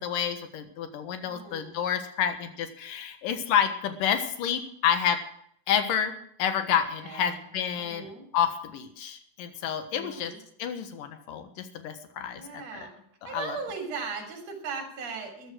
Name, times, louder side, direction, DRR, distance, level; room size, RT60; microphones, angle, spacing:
voice 1, 0.0-5.2 5.7-6.1 6.4-10.3 10.6-12.9 13.2-13.6, left 8 dB, 70° left, 8 dB, 2.9 m, -29 dB
voice 2, 1.3-1.8 7.0-7.4 7.8-8.2 9.9-10.4 12.3-12.9 13.2-15.5, right 5 dB, 50° right, 3 dB, 4.3 m, -38 dB
14.0 x 11.5 x 6.2 m, 0.67 s
omnidirectional pair, 4.1 m